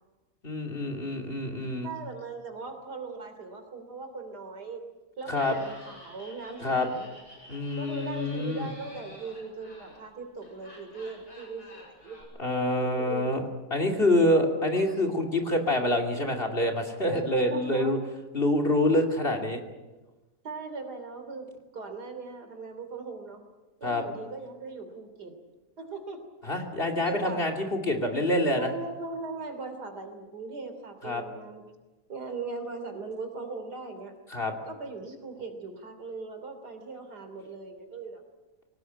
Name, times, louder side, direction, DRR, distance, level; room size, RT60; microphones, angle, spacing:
voice 1, 0.4-1.9 5.3-5.6 6.6-6.9 7.5-8.7 12.4-13.4 13.7-18.0 18.3-19.6 23.8-24.0 26.4-28.7 31.0-31.2 34.3-34.5, left 1 dB, 35° left, 3 dB, 2.8 m, -26 dB
voice 2, 1.8-4.8 5.2-7.1 7.8-12.2 12.8-13.3 14.9-15.0 17.1-18.0 20.4-23.4 23.8-25.4 25.8-26.3 27.0-27.5 28.6-31.6 32.1-34.1 34.7-38.2, right 3 dB, 75° right, 6 dB, 3.7 m, -39 dB
Laughter, 5.3-12.2, left 1 dB, 70° left, 8.9 m, -50 dB
23.0 x 18.5 x 9.3 m, 1.2 s
omnidirectional pair, 1.7 m